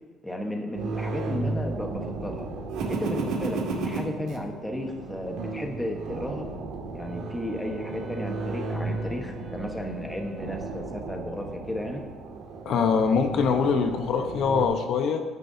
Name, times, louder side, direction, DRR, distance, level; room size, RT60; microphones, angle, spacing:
voice 1, 0.2-2.5 2.9-6.5 6.9-12.0, left 1 dB, 5° left, 2 dB, 1.2 m, -34 dB
sound 1, 0.8-14.7, right 3 dB, 80° right, 2.1 m, -34 dB
Wind instrument woodwind instrument, 7.0-11.3, left 2 dB, 15° right, 3.6 m, -49 dB
voice 2, 12.6-15.2, left 6 dB, 55° left, 6 dB, 0.9 m, -23 dB
17.5 x 10.0 x 2.8 m, 1.5 s
cardioid pair, 160°, 0 cm